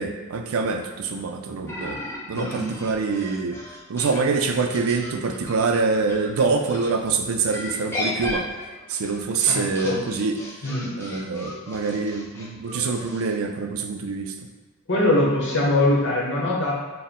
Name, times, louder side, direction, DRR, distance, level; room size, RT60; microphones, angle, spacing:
voice 1, 0.0-2.0 2.3-3.6 3.9-8.5 8.9-10.4 11.0-14.3, right 4 dB, 80° right, 4 dB, 0.4 m, -25 dB
sound 1, 1.7-6.9 7.5-13.3, left 1 dB, 10° left, 0.6 m, -35 dB
voice 2, 2.3-2.7 9.5-10.0 10.6-10.9 14.9-16.7, left 1 dB, 60° left, -4 dB, 1.0 m, -22 dB
4.3 x 2.1 x 3.6 m, 1.3 s
head